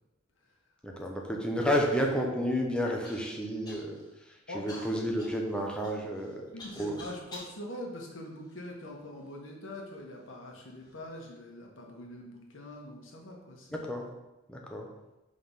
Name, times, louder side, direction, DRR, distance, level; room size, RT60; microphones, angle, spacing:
voice 1, 0.8-6.5 6.8-7.0 13.7-14.1 14.5-14.9, equal, 5° left, 0 dB, 0.9 m, -31 dB
Human voice / Cough, 3.0-3.2 3.6-4.1 4.7-7.5 8.2-9.1 9.8-9.9 10.6-11.0, left 2 dB, 20° left, 1.7 m, -49 dB
voice 2, 6.5-13.8, left 1 dB, 70° left, 0 dB, 1.4 m, -43 dB
5.3 x 3.8 x 5.6 m, 1.0 s
head